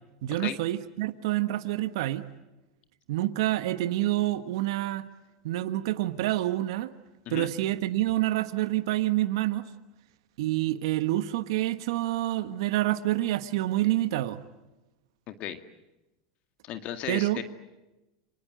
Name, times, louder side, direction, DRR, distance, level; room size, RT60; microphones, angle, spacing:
voice 1, 0.2-2.2 3.1-5.0 5.4-6.9 7.3-9.6 10.4-14.4 17.1-17.4, right 15 dB, 70° right, 10 dB, 1.4 m, -27 dB
voice 2, 15.3-15.6 16.6-17.4, left 11 dB, 50° left, 8 dB, 2.1 m, -35 dB
30.0 x 26.0 x 7.7 m, 1.0 s
hypercardioid pair, 95°, 3 cm